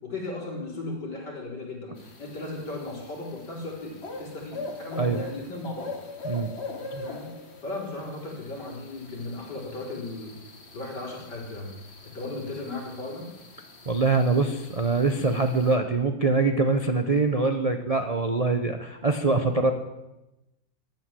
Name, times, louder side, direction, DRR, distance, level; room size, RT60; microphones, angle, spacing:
voice 1, 0.0-5.9 6.9-7.3 7.6-10.3 10.7-11.7 12.1-13.3, left 2 dB, 60° left, -3 dB, 5.1 m, -36 dB
sound 1, 2.0-15.8, left 3 dB, 35° left, 1.9 m, -42 dB
voice 2, 13.9-19.7, right 3 dB, 40° right, 6 dB, 0.5 m, -24 dB
14.5 x 10.5 x 7.6 m, 0.98 s
omnidirectional pair, 2.1 m